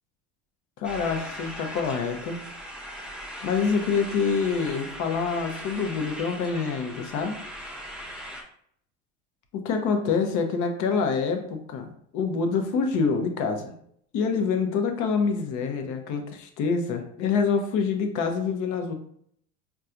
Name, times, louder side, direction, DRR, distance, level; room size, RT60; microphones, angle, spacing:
voice 1, 0.8-2.4 3.4-7.4 9.5-11.9 12.1-13.7 14.1-18.9, left 5 dB, 55° left, 5 dB, 0.7 m, -26 dB
sound 1, 0.8-8.4, equal, 5° right, 0.6 m, -39 dB
4.2 x 2.3 x 2.5 m, 0.66 s
supercardioid pair, 100°, 37 cm